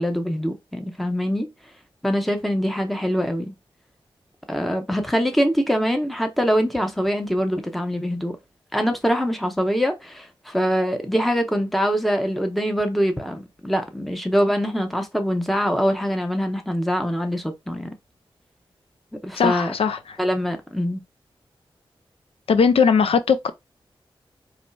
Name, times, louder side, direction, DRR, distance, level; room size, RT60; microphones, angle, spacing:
voice 1, 0.0-1.5 2.0-3.5 4.5-8.4 8.7-17.9 19.2-19.7 20.2-21.0, equal, ahead, 0.7 m, -23 dB
voice 2, 19.4-20.0 22.5-23.5, left 6 dB, 80° left, 0.4 m, -18 dB
4.3 x 3.1 x 2.2 m
wide cardioid pair, 130°, 10 cm